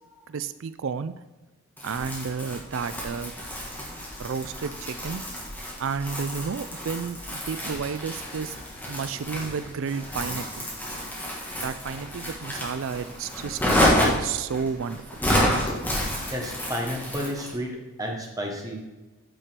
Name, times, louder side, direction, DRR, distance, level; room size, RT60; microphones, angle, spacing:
voice 1, 0.3-1.1 1.8-3.3 4.2-5.2 5.8-8.6 8.9-10.7 11.6-15.0, right 6 dB, 60° right, 13 dB, 0.4 m, -32 dB
Crumpling crinkling, 1.8-17.6, equal, 10° left, 1.9 m, -29 dB
voice 2, 16.3-18.8, equal, 15° right, 0 dB, 1.3 m, -31 dB
8.9 x 6.7 x 4.5 m, 1.1 s
head